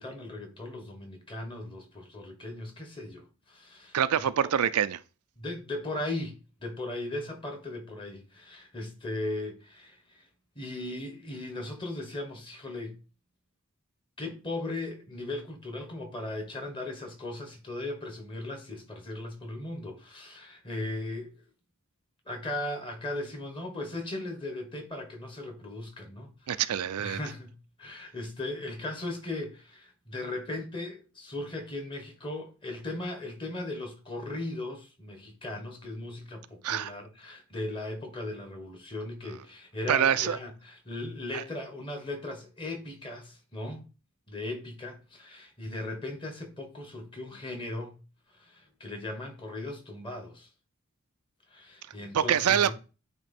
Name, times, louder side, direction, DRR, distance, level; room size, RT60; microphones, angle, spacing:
voice 1, 0.0-4.0 4.4-4.5 5.4-10.3 10.5-13.0 14.2-21.3 22.2-43.8 44.3-48.0 48.4-50.5 51.5-52.7, left 2 dB, 20° left, 1.4 m, -38 dB
voice 2, 3.9-5.0 26.5-27.2 36.6-36.9 39.9-40.4 41.3-41.4 52.1-52.7, right 9 dB, 80° right, 0.4 m, -25 dB
8.9 x 3.1 x 4.3 m
head